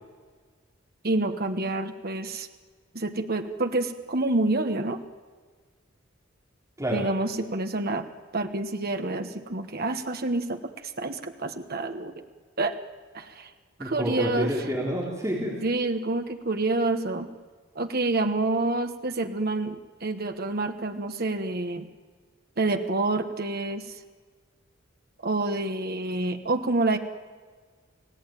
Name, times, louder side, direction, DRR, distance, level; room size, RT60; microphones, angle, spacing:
voice 1, 1.0-2.5 2.9-5.0 6.9-8.1 8.3-12.2 12.6-12.7 13.1-13.5 13.8-14.5 15.6-17.3 17.7-21.9 22.6-24.0 25.2-27.0, right 2 dB, 45° right, 7 dB, 1.3 m, -28 dB
voice 2, 13.8-15.6, equal, 15° right, -4 dB, 4.1 m, -28 dB
29.5 x 17.5 x 9.2 m, 1.5 s
head